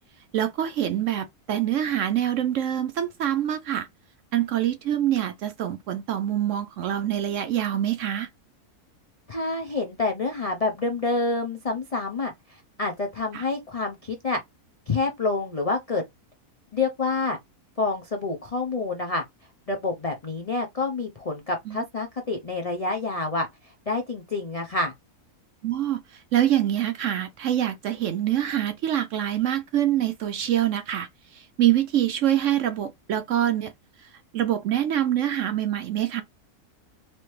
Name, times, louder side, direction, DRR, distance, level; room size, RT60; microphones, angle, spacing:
voice 1, 0.3-3.9 4.3-8.3 13.3-13.4 21.7-21.8 25.6-26.0 26.3-31.1 31.6-33.7 34.3-36.2, right 11 dB, 70° right, 0.8 m, -25 dB
voice 2, 9.3-14.4 14.9-16.0 16.7-17.4 17.8-19.2 19.7-24.9, left 3 dB, 60° left, 0.4 m, -28 dB
4.1 x 3.1 x 3.1 m
omnidirectional pair, 1.6 m